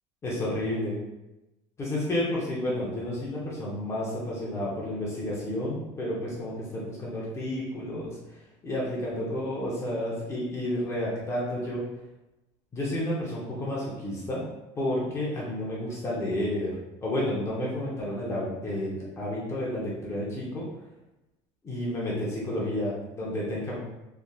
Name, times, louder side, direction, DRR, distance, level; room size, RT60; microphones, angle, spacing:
voice 1, 0.2-1.0 1.8-8.2 8.6-11.8 12.7-14.4 14.8-20.6 21.6-23.8, left 1 dB, 25° left, -6 dB, 0.7 m, -31 dB
3.3 x 2.5 x 2.3 m, 0.96 s
cardioid pair, 150°, 12 cm